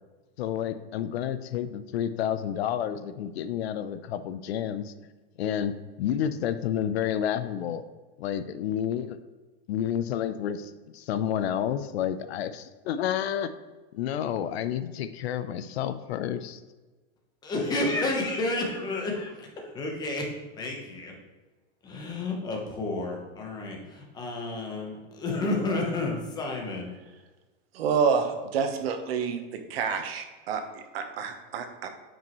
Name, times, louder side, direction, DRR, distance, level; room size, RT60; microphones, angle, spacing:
voice 1, 0.4-4.9 5.4-5.7 6.0-7.8 8.2-9.2 9.7-13.5 13.9-16.6, left 9 dB, 85° left, 11 dB, 0.7 m, -30 dB
voice 2, 17.4-21.1 21.8-26.9, left 2 dB, 15° left, 0 dB, 0.9 m, -31 dB
voice 3, 27.7-31.9, right 6 dB, 75° right, 6 dB, 1.1 m, -28 dB
8.9 x 5.2 x 3.1 m, 1.3 s
supercardioid pair, 175°, 31 cm